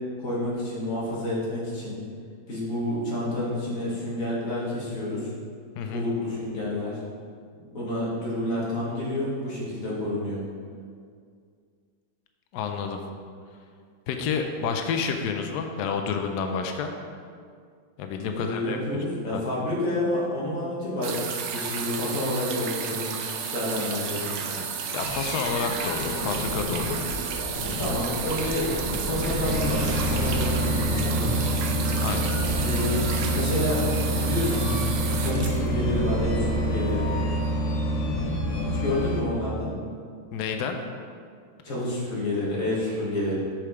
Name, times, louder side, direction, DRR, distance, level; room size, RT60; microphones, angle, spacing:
voice 1, 0.2-1.9 2.5-5.3 5.9-7.0 7.7-10.4 18.3-23.1 23.4-24.6 27.8-28.7 29.0-31.3 32.6-33.0 33.3-33.8 34.1-34.7 35.2-37.1 38.8-39.7 41.6-43.4, left 1 dB, 40° left, -6 dB, 2.1 m, -29 dB
voice 2, 12.5-13.0 14.1-16.9 18.0-18.8 19.3-19.4 24.9-27.3 32.0-32.3 40.3-40.8, left 6 dB, 85° left, 5 dB, 0.9 m, -29 dB
sound 1, 21.0-36.4 37.3-37.4, right 6 dB, 70° right, 1.2 m, -32 dB
sound 2, 25.0-37.6, equal, 30° right, 2.0 m, -33 dB
sound 3, 29.4-39.2, right 1 dB, 55° left, 1.3 m, -27 dB
7.5 x 5.0 x 4.8 m, 2.1 s
omnidirectional pair, 2.3 m